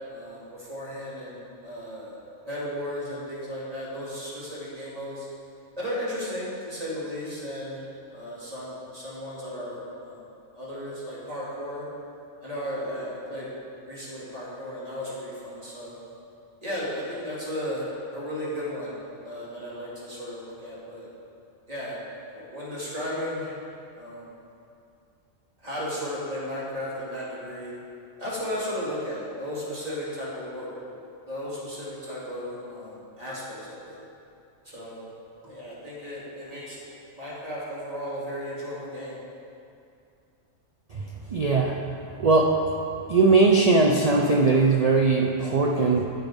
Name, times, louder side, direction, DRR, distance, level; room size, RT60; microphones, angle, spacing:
voice 1, 0.1-2.2 2.5-5.3 5.8-7.8 8.1-10.2 10.5-11.8 12.4-13.5 13.9-16.0 16.6-18.9 19.2-21.1 21.7-22.0 22.3-23.5 23.9-24.3 25.6-27.7 28.2-31.0 31.3-34.0 34.6-35.1 35.4-36.8 37.2-39.2, equal, 30° right, -8 dB, 2.4 m, -35 dB
voice 2, 41.3-41.9 42.2-42.6 43.1-46.0, right 3 dB, 70° right, 0 dB, 0.3 m, -20 dB
9.1 x 8.4 x 3.6 m, 2.5 s
omnidirectional pair, 1.3 m